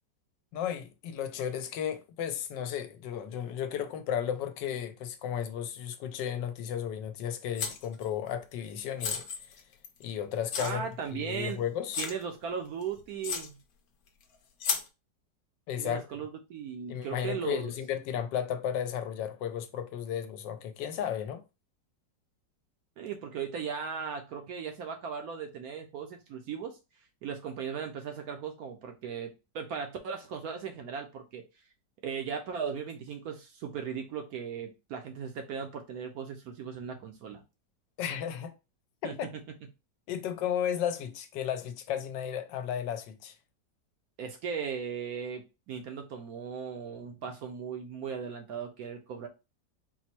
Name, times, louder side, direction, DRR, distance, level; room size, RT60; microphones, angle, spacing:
voice 1, 0.5-9.2 9.5-9.6 10.0-10.8 11.1-12.0 15.7-16.0 16.9-21.4 38.0-38.5 39.0-39.3 40.1-43.3, left 9 dB, 85° left, 1.3 m, -34 dB
sound 1, 7.6-8.1 9.0-10.0 10.5-10.7 11.4-11.5 11.9-12.2 12.8-12.9 13.2-13.5 14.6-14.9, left 6 dB, 65° left, 1.0 m, -33 dB
voice 2, 10.6-11.6 12.0-13.6 15.8-17.7 23.0-26.8 27.2-31.4 32.0-37.4 39.0-39.3 44.2-49.3, right 6 dB, 70° right, 0.9 m, -37 dB
4.3 x 2.1 x 4.3 m
omnidirectional pair, 1.9 m